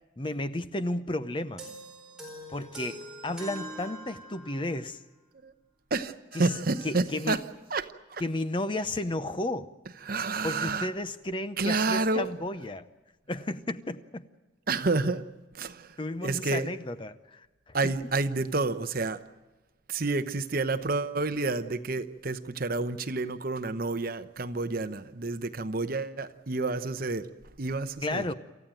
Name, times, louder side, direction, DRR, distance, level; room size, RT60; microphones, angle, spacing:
voice 1, 0.2-1.7 2.5-5.0 6.3-6.5 6.8-7.4 8.2-9.7 10.4-12.9 13.3-14.2 16.0-17.9 28.0-28.3, left 1 dB, 25° left, 0.7 m, -33 dB
sound 1, 1.6-4.8, right 1 dB, 5° right, 4.6 m, -43 dB
voice 2, 5.9-7.4 7.7-8.2 10.0-10.9 11.6-12.3 14.7-15.2 15.5-16.7 17.7-19.2 19.9-27.3 27.6-28.3, right 3 dB, 45° right, 0.9 m, -29 dB
28.0 x 14.5 x 9.0 m
head